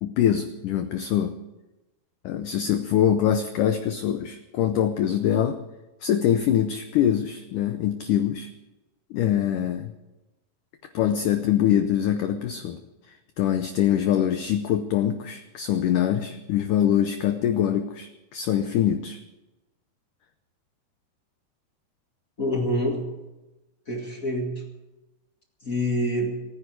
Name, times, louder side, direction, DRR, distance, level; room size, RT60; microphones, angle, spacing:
voice 1, 0.0-1.3 2.2-5.6 6.0-8.5 9.1-9.9 10.9-12.8 13.4-19.2, left 10 dB, 90° left, 9 dB, 1.8 m, -24 dB
voice 2, 22.4-23.1 23.9-24.6 25.6-26.4, equal, 45° left, 1 dB, 1.1 m, -26 dB
28.0 x 10.0 x 4.8 m, 1.0 s
omnidirectional pair, 4.7 m